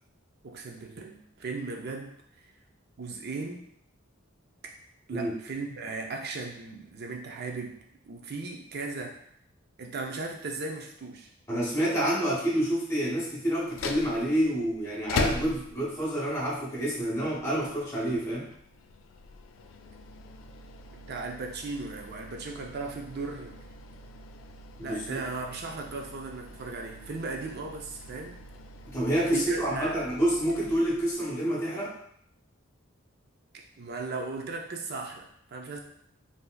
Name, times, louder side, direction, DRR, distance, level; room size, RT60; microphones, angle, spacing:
voice 1, 0.4-2.1 2.4-2.5 3.0-3.7 5.1-7.8 8.0-9.2 9.8-11.3 20.9-23.6 24.8-28.4 29.3-30.0 33.5-35.8, right 3 dB, 55° right, 2 dB, 0.5 m, -37 dB
voice 2, 11.5-18.5 24.8-25.2 28.9-31.9, right 1 dB, 15° left, -6 dB, 1.1 m, -28 dB
sound 1, 13.6-31.4, left 3 dB, 80° left, 0.3 m, -41 dB
3.4 x 2.7 x 2.2 m, 0.67 s
head